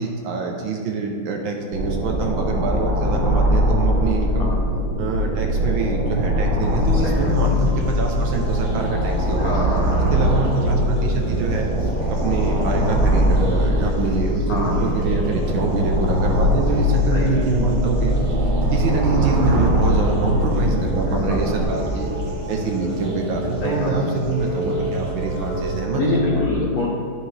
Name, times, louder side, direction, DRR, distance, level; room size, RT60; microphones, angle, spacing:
voice 1, 0.0-4.5 5.0-9.6 10.1-11.7 12.1-18.2 18.7-22.1 22.5-26.2, right 4 dB, 80° right, 1 dB, 1.5 m, -25 dB
sound 1, 1.7-21.6, equal, 55° right, 1.4 m, -21 dB
sound 2, 6.6-25.8, equal, 30° right, 0.9 m, -31 dB
voice 2, 9.4-9.8 14.5-14.9 17.1-17.3 21.1-21.4 23.6-24.1 25.9-26.9, left 2 dB, 55° left, -3 dB, 1.2 m, -25 dB
sound 3, 18.3-26.4, right 1 dB, 85° left, 2.0 m, -32 dB
10.5 x 4.9 x 3.2 m, 2.1 s
omnidirectional pair, 2.1 m